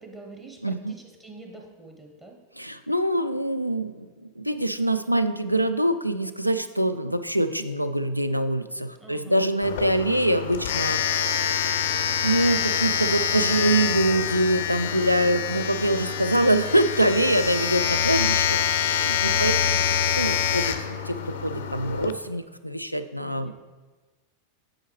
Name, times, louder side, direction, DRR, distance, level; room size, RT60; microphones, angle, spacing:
voice 1, 0.0-2.4 9.0-9.4 14.8-15.4 19.3-20.0 23.2-23.5, right 3 dB, 15° right, 1 dB, 0.9 m, -46 dB
voice 2, 0.6-0.9 2.6-11.9 12.2-19.5 20.1-23.5, right 1 dB, 90° right, 11 dB, 0.3 m, -24 dB
Domestic sounds home sounds, 9.6-22.1, left 8 dB, 55° left, 0.5 m, -26 dB
8.8 x 4.8 x 3.2 m, 1.3 s
figure-of-eight pair, 90°, 0 cm